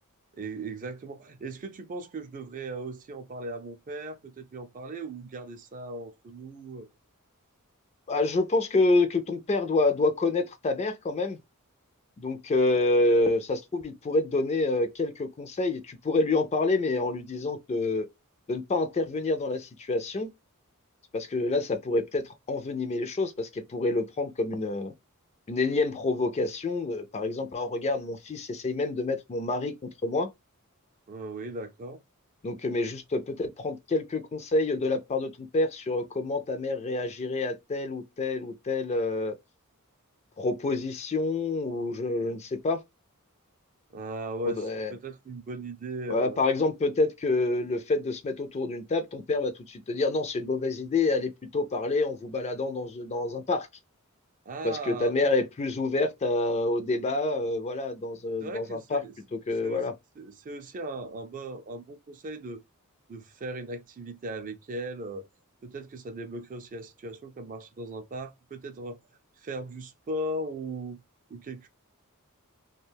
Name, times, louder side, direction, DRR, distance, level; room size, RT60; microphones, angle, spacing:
voice 1, 0.4-6.9 31.1-32.0 43.9-46.4 54.5-55.1 58.4-59.1 59.6-59.8 60.2-62.6 63.1-65.3 65.6-69.0 69.4-71.0 71.3-71.7, right 1 dB, 35° right, 0.4 m, -38 dB
voice 2, 8.1-11.4 12.2-18.1 18.5-20.3 21.1-24.9 25.5-30.3 32.4-39.4 40.4-42.8 44.4-44.9 46.1-53.7 54.6-59.0 59.5-59.9, left 2 dB, 30° left, 0.4 m, -27 dB
2.3 x 2.2 x 3.2 m
head